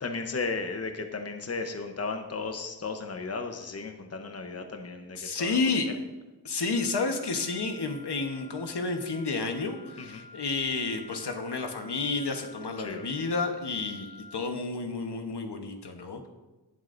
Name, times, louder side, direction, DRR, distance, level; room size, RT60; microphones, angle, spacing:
voice 1, 0.0-5.6 5.9-6.0 10.0-10.3 12.8-13.0, left 4 dB, 40° left, 5 dB, 0.9 m, -35 dB
voice 2, 5.2-5.9 6.4-16.3, left 3 dB, 75° left, 5 dB, 1.2 m, -31 dB
Wind instrument woodwind instrument, 6.7-14.5, left 2 dB, 80° right, 1.9 m, -50 dB
19.0 x 7.7 x 2.6 m, 1.1 s
wide cardioid pair, 105°, 40 cm